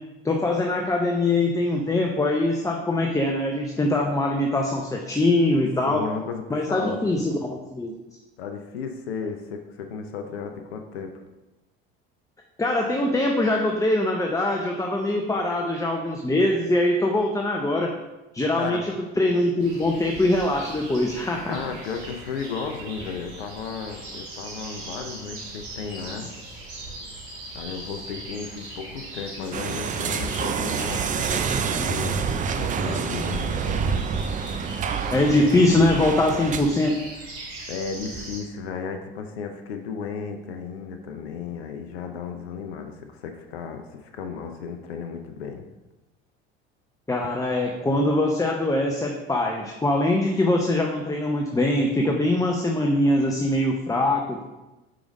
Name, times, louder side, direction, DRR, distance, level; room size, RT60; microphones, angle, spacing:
voice 1, 0.2-6.0 6.5-8.0 12.6-18.0 18.3-21.6 35.1-36.9 47.1-54.4, left 1 dB, 10° left, 0 dB, 0.7 m, -23 dB
voice 2, 5.9-7.2 8.4-11.2 18.6-18.8 21.5-26.3 27.5-33.9 37.7-45.7, left 6 dB, 85° left, 6 dB, 0.6 m, -34 dB
sound 1, 19.6-38.4, right 2 dB, 65° right, 1.6 m, -40 dB
sound 2, 29.5-36.8, right 6 dB, 25° right, 0.4 m, -27 dB
5.0 x 3.8 x 5.0 m, 1.0 s
hypercardioid pair, 70°, 30 cm